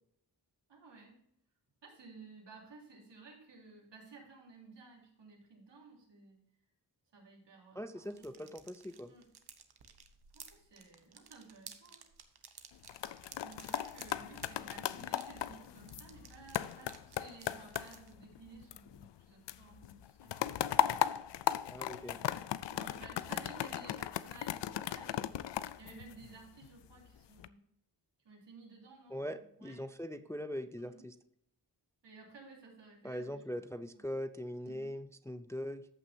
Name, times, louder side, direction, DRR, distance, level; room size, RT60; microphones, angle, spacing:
voice 1, 0.7-1.2 1.8-6.4 7.1-8.5 9.1-9.3 10.3-12.1 13.4-21.5 21.9-27.6 28.2-29.8 30.8-31.0 32.0-33.6 33.9-34.1 34.6-34.9, right 3 dB, 80° right, -2 dB, 3.3 m, -55 dB
voice 2, 7.8-9.1 21.7-22.2 29.1-31.1 33.0-35.9, equal, 5° left, 11 dB, 0.4 m, -41 dB
sound 1, 8.0-18.1, right 7 dB, 65° right, 1.1 m, -55 dB
sound 2, 12.7-19.2 19.5-26.7 27.2-27.5, left 11 dB, 80° left, 0.5 m, -37 dB
13.5 x 5.9 x 2.7 m, 0.75 s
wide cardioid pair, 90°, 42 cm